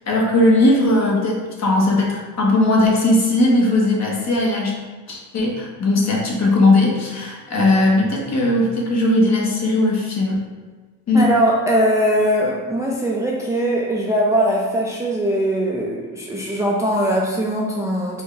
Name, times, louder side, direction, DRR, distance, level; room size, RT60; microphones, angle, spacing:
voice 1, 0.1-4.8 5.1-10.5 11.1-11.3, left 2 dB, 40° left, -2 dB, 1.0 m, -18 dB
voice 2, 11.1-18.2, right 1 dB, 10° right, -3 dB, 0.4 m, -20 dB
4.5 x 2.3 x 3.1 m, 1.4 s
cardioid pair, 90°, 41 cm